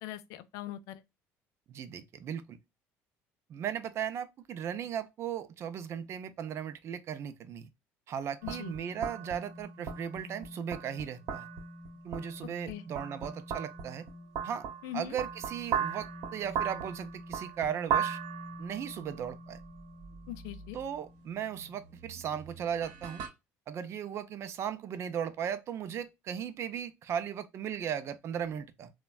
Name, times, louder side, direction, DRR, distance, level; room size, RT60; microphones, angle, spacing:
voice 1, 0.0-1.0 8.4-8.7 12.7-12.8 14.8-15.2 20.3-20.8, left 12 dB, 80° left, 0.4 m, -41 dB
voice 2, 1.7-2.6 3.5-7.7 8.1-11.5 12.0-14.0 14.4-14.7 14.9-18.2 18.6-19.6 20.7-23.2 23.7-28.9, right 8 dB, 50° right, 0.4 m, -37 dB
sound 1, 8.4-23.3, right 7 dB, 75° right, 0.9 m, -38 dB
3.2 x 2.1 x 2.2 m
cardioid pair, 110°, 6 cm